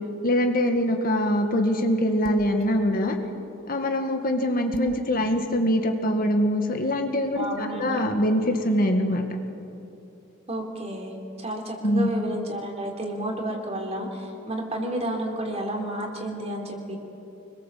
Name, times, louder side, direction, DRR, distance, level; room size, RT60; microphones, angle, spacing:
voice 1, 0.2-3.2 3.7-9.3 11.8-12.1, equal, 45° left, 4 dB, 1.9 m, -23 dB
sound 1, 2.2-2.6 4.7-5.1, equal, 70° left, 1.7 m, -32 dB
voice 2, 7.4-8.0 10.5-11.1 11.4-17.0, right 1 dB, 35° right, 1 dB, 3.7 m, -31 dB
25.5 x 21.5 x 7.6 m, 2.8 s
head